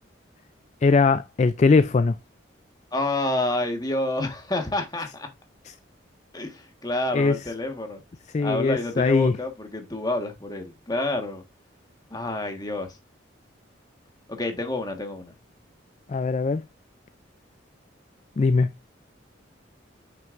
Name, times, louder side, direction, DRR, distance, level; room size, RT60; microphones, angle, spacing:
voice 1, 0.8-2.2 5.7-5.8 7.1-7.4 8.3-9.4 16.1-16.6 18.4-18.7, left 4 dB, 35° left, 0.3 m, -20 dB
voice 2, 2.9-5.3 6.3-8.0 8.4-11.4 12.1-13.0 14.3-15.3, left 2 dB, 20° left, 1.4 m, -28 dB
8.9 x 6.1 x 2.5 m
head